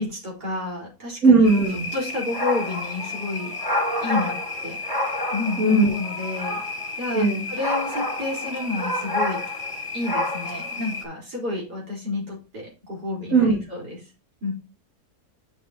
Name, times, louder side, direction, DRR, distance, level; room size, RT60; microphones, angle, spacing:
voice 1, 0.0-1.5 1.9-3.5 4.0-4.4 4.6-4.8 5.3-6.6 7.0-7.2 7.5-9.4 9.9-13.9 14.4-14.5, left 3 dB, 80° right, -4 dB, 5.2 m, -30 dB
voice 2, 1.2-1.8 5.6-5.9 7.1-7.5 13.3-13.6, right 3 dB, 60° right, -3 dB, 2.8 m, -17 dB
sound 1, 1.4-11.0, left 2 dB, 15° right, 2.1 m, -29 dB
9.0 x 6.2 x 2.9 m, 0.31 s
omnidirectional pair, 1.7 m